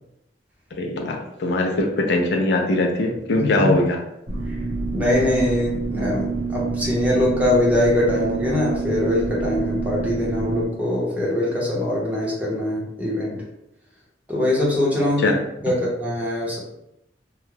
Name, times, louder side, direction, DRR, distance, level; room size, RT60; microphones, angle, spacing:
voice 1, 0.8-4.0 15.2-15.3, left 2 dB, 70° left, 2 dB, 0.4 m, -21 dB
voice 2, 3.3-3.8 4.5-4.6 4.9-13.5 14.3-16.6, left 1 dB, 10° right, -5 dB, 0.7 m, -22 dB
sound 1, 4.3-10.7, right 4 dB, 55° right, 1.0 m, -27 dB
2.3 x 2.1 x 3.1 m, 0.82 s
head